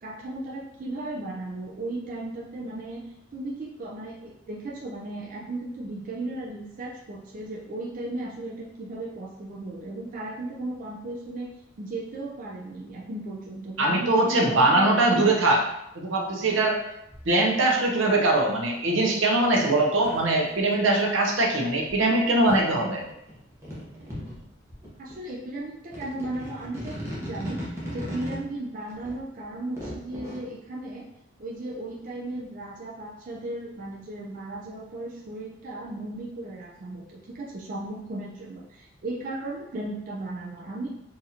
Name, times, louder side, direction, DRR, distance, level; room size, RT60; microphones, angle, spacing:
voice 1, 0.0-3.0 3.3-11.5 11.8-15.3 25.0-31.1 31.4-40.9, right 2 dB, 40° right, -4 dB, 0.4 m, -36 dB
voice 2, 13.8-15.6 15.9-16.8 17.3-23.0, right 2 dB, 70° right, 0 dB, 0.7 m, -22 dB
sound 1, 17.1-17.3 19.2-19.3 20.0-21.0 21.9-22.0 22.5-24.4 24.7-25.1 25.9-28.4 28.9-30.4, equal, 15° right, 0.8 m, -37 dB
4.1 x 2.5 x 2.7 m, 0.83 s
head